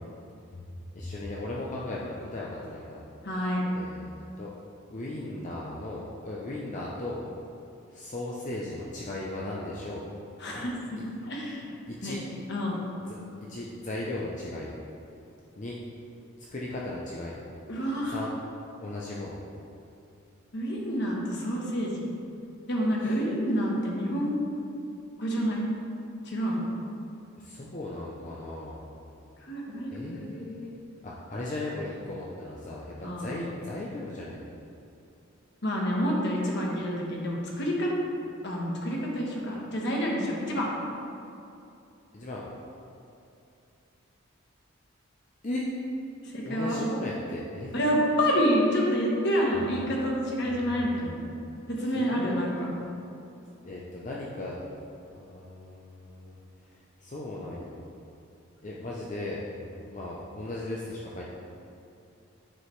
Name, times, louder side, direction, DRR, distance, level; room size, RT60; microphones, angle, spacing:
voice 1, 0.9-3.0 3.7-4.5 4.9-7.2 7.9-10.0 10.5-10.7 11.0-11.1 11.9-12.2 13.0-13.2 13.5-14.7 15.6-15.8 16.5-17.4 18.1-18.3 18.8-19.4 23.0-23.2 27.4-28.9 29.9-34.4 42.1-42.4 45.4-45.6 46.5-47.9 52.0-52.3 53.6-54.7 55.1-56.4 56.7-57.8 58.6-59.4 59.9-61.2, left 2 dB, 35° left, -5 dB, 0.6 m, -37 dB
voice 2, 3.2-3.6 10.4-11.7 12.0-12.1 12.5-12.8 17.7-18.2 20.5-22.1 22.7-24.4 25.2-25.7 26.2-26.7 29.4-30.3 33.0-33.3 35.6-37.9 38.4-40.7 46.2-46.8 47.7-51.2 51.7-52.7, equal, 50° left, -3 dB, 1.2 m, -28 dB
9.6 x 4.8 x 3.2 m, 2.7 s
head